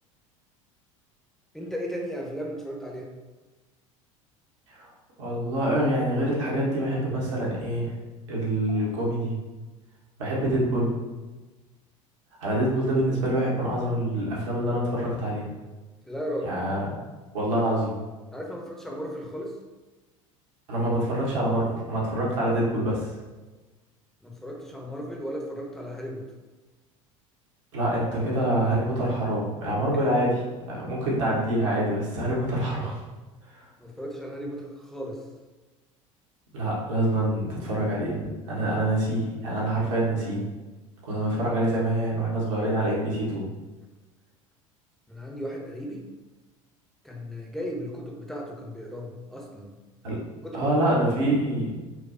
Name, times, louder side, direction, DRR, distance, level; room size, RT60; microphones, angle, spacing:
voice 1, 1.5-3.1 16.0-16.6 18.3-19.5 24.2-26.3 33.8-35.3 45.1-46.0 47.0-49.8 50.4-50.7, equal, ahead, -1 dB, 0.7 m, -35 dB
voice 2, 5.2-7.9 8.3-9.4 10.2-10.9 12.4-15.5 16.4-16.9 17.3-17.9 20.7-23.1 27.7-33.0 36.5-40.4 41.0-43.5 50.0-50.2 50.5-51.7, right 1 dB, 70° right, -5 dB, 1.2 m, -26 dB
4.7 x 2.2 x 2.5 m, 1.2 s
figure-of-eight pair, 70°, 17 cm